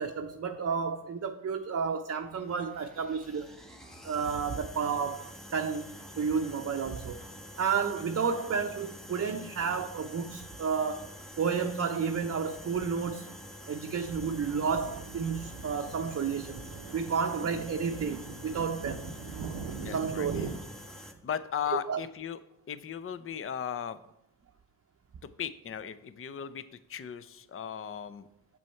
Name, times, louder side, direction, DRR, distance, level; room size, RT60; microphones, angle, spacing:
voice 1, 0.0-3.6 4.0-7.2 7.6-11.1 11.4-13.3 13.7-16.6 16.9-19.1 19.9-20.6 21.7-22.0, right 6 dB, 35° right, 4 dB, 0.7 m, -31 dB
sound 1, 2.2-21.1, equal, ahead, 1.6 m, -47 dB
sound 2, 14.1-20.6, right 5 dB, 85° right, 0.8 m, -42 dB
voice 2, 19.8-20.4 21.2-22.4 22.7-24.0 25.4-28.3, left 8 dB, 30° left, 13 dB, 0.6 m, -37 dB
7.0 x 6.1 x 4.5 m, 0.79 s
supercardioid pair, 50°, 41 cm